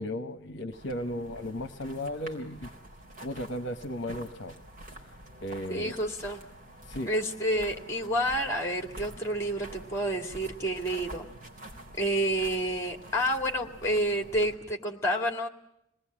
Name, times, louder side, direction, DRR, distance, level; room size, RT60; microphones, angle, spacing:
voice 1, 0.0-2.7 3.2-4.5 5.4-6.0 6.9-7.1, left 1 dB, 55° left, 9 dB, 1.0 m, -35 dB
sound 1, 0.7-14.5, right 1 dB, 40° right, 4.2 m, -47 dB
voice 2, 5.7-6.4 7.1-11.3 12.0-15.5, right 1 dB, 15° left, 4 dB, 2.4 m, -29 dB
26.5 x 19.5 x 8.8 m, 0.82 s
head